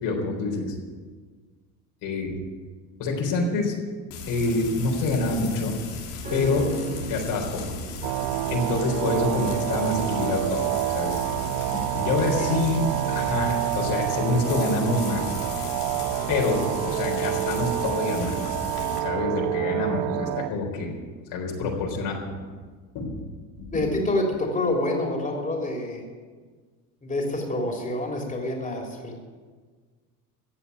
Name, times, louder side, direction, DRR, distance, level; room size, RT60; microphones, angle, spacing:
voice 1, 0.0-0.7 2.0-2.4 3.0-3.8 4.3-5.8 6.3-6.7 7.1-7.6 8.5-10.6 10.9-15.4 16.3-18.7 19.0-21.0 21.3-22.4 22.9-23.2 23.6-23.7, left 3 dB, 65° left, 0 dB, 4.1 m, -26 dB
Frying (food), 4.1-19.0, left 3 dB, 85° left, 3.3 m, -36 dB
sound 1, 6.2-15.6 15.9-16.0, right 3 dB, 20° right, 3.7 m, -40 dB
sound 2, 8.0-20.5, right 17 dB, 55° right, 0.5 m, -28 dB
voice 2, 12.1-12.6 23.7-26.0 27.0-29.2, left 1 dB, 15° left, 0 dB, 3.4 m, -27 dB
15.5 x 7.3 x 9.3 m, 1.5 s
supercardioid pair, 95°, 45 cm